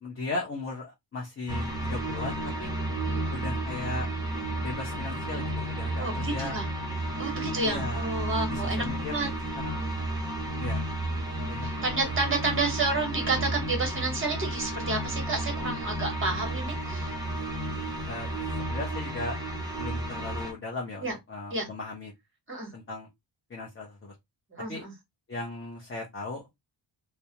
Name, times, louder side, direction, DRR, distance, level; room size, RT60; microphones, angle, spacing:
voice 1, 0.0-2.7 3.3-4.1 4.6-6.6 7.6-8.1 8.5-9.8 10.6-10.8 11.5-11.7 12.2-12.3 18.1-19.4 19.7-22.1 22.7-23.1 23.5-24.1 24.7-24.8 25.3-26.5, left 3 dB, 30° left, 0.6 m, -37 dB
sound 1, 1.5-20.5, right 1 dB, 10° right, 0.7 m, -32 dB
voice 2, 6.0-6.7 7.2-9.3 11.6-17.2 21.0-21.1 21.5-21.7 22.5-22.7 24.5-24.9, right 3 dB, 25° right, 1.0 m, -30 dB
2.3 x 2.1 x 2.8 m
wide cardioid pair, 140°, 45 cm